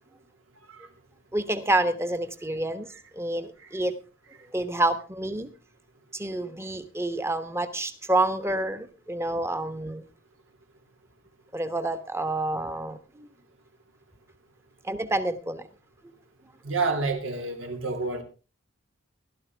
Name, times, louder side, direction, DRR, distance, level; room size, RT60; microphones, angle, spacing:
voice 1, 1.3-3.9 4.5-5.5 6.1-10.0 11.5-13.3 14.8-15.6, right 2 dB, 15° right, 1.3 m, -28 dB
voice 2, 16.6-18.2, right 3 dB, 80° right, 3.1 m, -28 dB
16.0 x 13.0 x 3.5 m
head